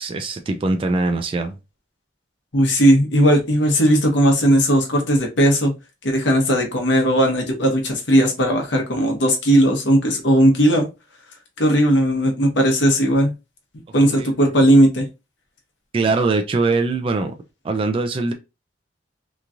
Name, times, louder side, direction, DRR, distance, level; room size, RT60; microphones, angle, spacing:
voice 1, 0.0-1.6 14.1-14.6 15.9-17.3 17.6-18.3, right 3 dB, 30° right, 0.3 m, -22 dB
voice 2, 2.5-5.7 6.0-10.9 11.6-13.3 13.9-15.0, equal, 75° left, 0.9 m, -17 dB
3.0 x 2.4 x 2.5 m
head